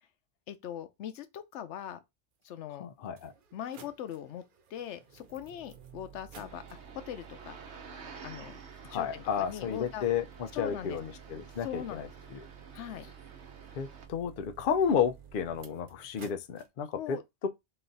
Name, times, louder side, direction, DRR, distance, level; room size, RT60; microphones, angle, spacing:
voice 1, 0.5-2.0 2.4-2.9 3.5-4.4 4.7-6.6 6.9-7.6 8.2-10.1 10.5-11.0 11.6-12.1 12.7-13.1 17.0-17.2, left 10 dB, 90° left, 0.9 m, -41 dB
sound 1, 2.4-2.5 3.1-16.7, right 8 dB, 55° right, 0.8 m, -53 dB
voice 2, 2.8-3.3 8.8-12.5 13.7-17.5, left 7 dB, 60° left, 0.7 m, -32 dB
sound 2, 6.4-14.1, right 5 dB, 75° right, 1.1 m, -51 dB
3.9 x 2.5 x 3.9 m
omnidirectional pair, 1.1 m